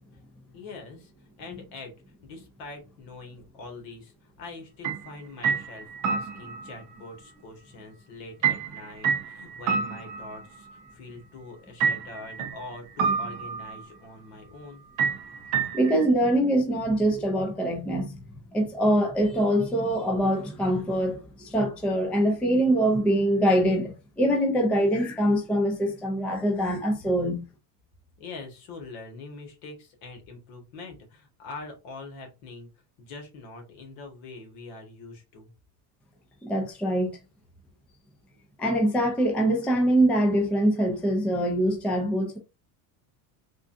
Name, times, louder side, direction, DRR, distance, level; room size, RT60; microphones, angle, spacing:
voice 1, 0.5-1.9 2.2-14.8 28.2-32.7 33.0-35.5, left 3 dB, 70° left, 1.5 m, -43 dB
sound 1, 4.8-5.1 5.4-6.8 8.4-10.7 11.8-12.6 13.0-13.8 15.0-16.1, right 6 dB, 40° right, 0.6 m, -28 dB
voice 2, 15.7-18.2 18.5-27.5 36.4-37.1 38.6-42.4, right 1 dB, 5° left, 0.3 m, -24 dB
3.6 x 2.3 x 2.5 m
supercardioid pair, 125°, 48 cm